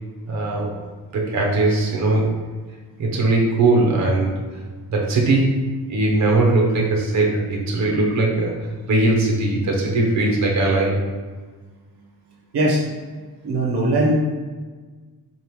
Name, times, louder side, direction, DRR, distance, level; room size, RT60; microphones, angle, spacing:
voice 1, 0.3-0.7 1.1-2.3 3.0-4.5 4.9-8.5 8.9-11.0, right 2 dB, 45° right, -1 dB, 0.9 m, -20 dB
voice 2, 13.4-14.1, right 1 dB, 75° right, -2 dB, 0.9 m, -19 dB
4.9 x 2.5 x 3.0 m, 1.4 s
cardioid pair, 100°, 40 cm